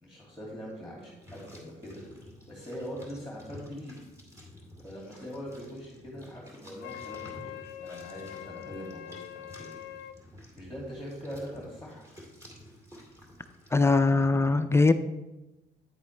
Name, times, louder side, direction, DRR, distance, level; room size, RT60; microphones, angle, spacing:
voice 1, 0.0-2.0 2.5-4.0 4.8-9.7 10.5-12.0, equal, ahead, -4 dB, 2.3 m, -42 dB
sound 1, 1.0-14.0, equal, 15° right, 2.3 m, -51 dB
Wind instrument woodwind instrument, 6.8-10.2, left 12 dB, 80° left, 0.5 m, -43 dB
voice 2, 13.7-14.9, left 3 dB, 15° left, 9 dB, 0.4 m, -21 dB
9.1 x 8.2 x 3.3 m, 1.0 s
cardioid pair, 110°, 17 cm